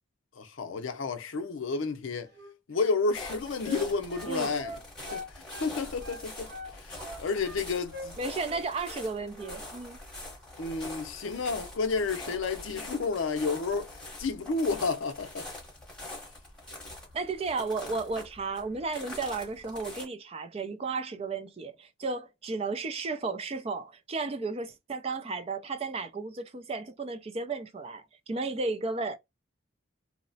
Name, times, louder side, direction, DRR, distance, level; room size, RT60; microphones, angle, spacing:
voice 1, 0.4-2.3 2.7-4.8 5.1-6.5 6.8-8.2 10.6-13.9 14.2-15.5, left 4 dB, 70° left, 0.5 m, -31 dB
Wind instrument woodwind instrument, 2.3-5.7 6.0-7.6 7.9-8.1 8.4-9.1 9.3-9.6, left 1 dB, 50° right, 0.7 m, -43 dB
sound 1, 3.1-20.0, left 1 dB, 5° left, 0.9 m, -44 dB
voice 2, 8.2-10.0 17.1-29.2, right 3 dB, 30° right, 0.3 m, -34 dB
2.8 x 2.0 x 2.6 m
head